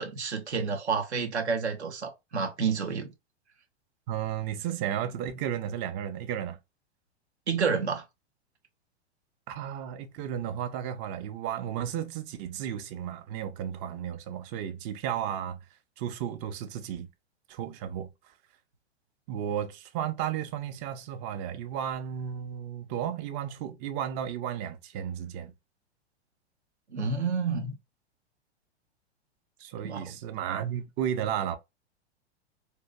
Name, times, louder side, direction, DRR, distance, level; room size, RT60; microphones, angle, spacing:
voice 1, 0.0-3.1 7.5-8.0 26.9-27.8 29.8-30.1, right 5 dB, 80° right, 0.8 m, -29 dB
voice 2, 4.1-6.6 9.5-15.6 16.0-17.1 17.5-18.1 19.3-25.5 29.6-31.6, right 9 dB, 30° right, 0.4 m, -33 dB
3.2 x 2.5 x 2.2 m
figure-of-eight pair, 100°, 33 cm